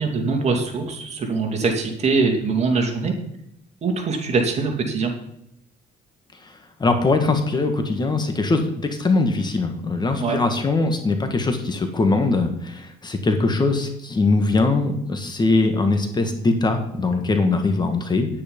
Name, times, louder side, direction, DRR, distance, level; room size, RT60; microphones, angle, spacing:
voice 1, 0.0-3.1 3.8-5.1 10.2-10.4, right 4 dB, 40° right, 3 dB, 2.8 m, -22 dB
voice 2, 6.8-18.3, left 3 dB, 25° left, 6 dB, 1.6 m, -21 dB
9.9 x 9.5 x 5.3 m, 0.76 s
cardioid pair, 110°, 17 cm